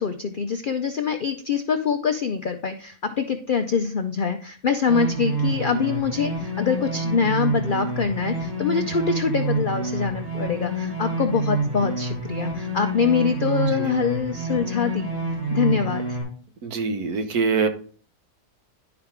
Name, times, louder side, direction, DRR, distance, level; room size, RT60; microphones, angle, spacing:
voice 1, 0.0-15.1 15.5-16.2, left 6 dB, 65° left, 6 dB, 0.5 m, -24 dB
sound 1, 4.9-16.2, right 2 dB, 60° right, 4.8 m, -28 dB
voice 2, 16.6-17.7, right 5 dB, 75° right, 7 dB, 1.5 m, -23 dB
10.5 x 4.9 x 3.6 m, 0.43 s
omnidirectional pair, 1.6 m